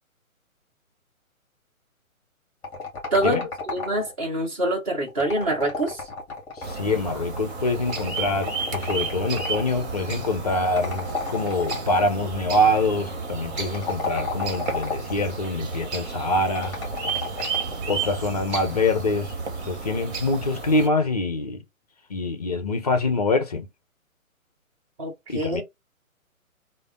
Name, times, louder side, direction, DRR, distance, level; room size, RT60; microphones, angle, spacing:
sound 1, 2.6-4.3 5.1-6.9 7.9-9.7 10.8-12.1 13.6-15.2 16.5-17.8, left 4 dB, 5° left, 1.1 m, -32 dB
voice 1, 3.1-6.0 25.0-25.6, right 1 dB, 25° right, 1.3 m, -25 dB
voice 2, 6.6-16.7 17.9-19.3 19.7-21.6 22.1-23.7 25.3-25.6, left 2 dB, 30° left, 0.5 m, -25 dB
sound 2, 6.6-20.9, right 4 dB, 50° right, 1.3 m, -32 dB
3.4 x 2.1 x 3.6 m
figure-of-eight pair, 135°, 42 cm